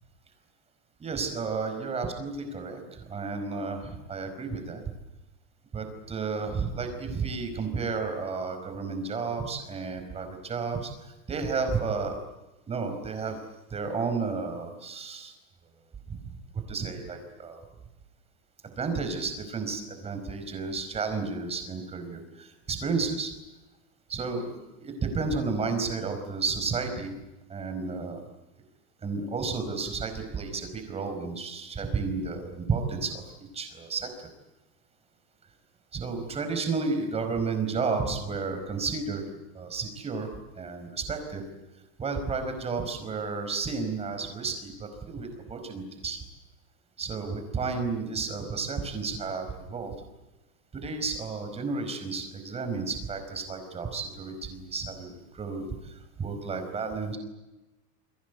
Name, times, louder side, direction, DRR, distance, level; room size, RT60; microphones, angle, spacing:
voice 1, 1.0-4.8 5.7-12.2 12.7-13.4 13.7-15.3 16.1-16.2 16.7-17.6 18.8-23.3 24.1-27.1 27.5-28.2 29.0-33.2 33.5-34.1 35.9-39.2 39.5-40.3 40.5-41.4 42.0-46.2 47.0-49.9 50.7-57.2, right 4 dB, 15° right, 7 dB, 4.8 m, -32 dB
30.0 x 22.5 x 8.1 m, 1.0 s
supercardioid pair, 175°, 42 cm